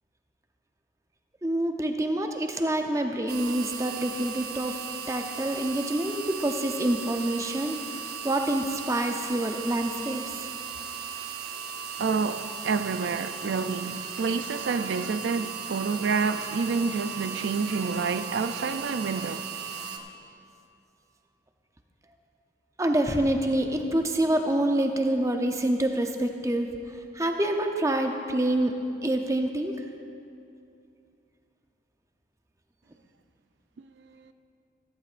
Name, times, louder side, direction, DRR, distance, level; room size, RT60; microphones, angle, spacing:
voice 1, 1.4-4.8 5.1-7.8 8.2-10.2 22.8-26.7 27.1-29.7, right 1 dB, 15° right, 0.6 m, -26 dB
sound 1, 3.3-20.0, right 6 dB, 60° right, 0.9 m, -37 dB
voice 2, 12.0-19.4 33.8-34.3, right 5 dB, 80° right, 0.4 m, -29 dB
14.5 x 14.0 x 2.5 m
head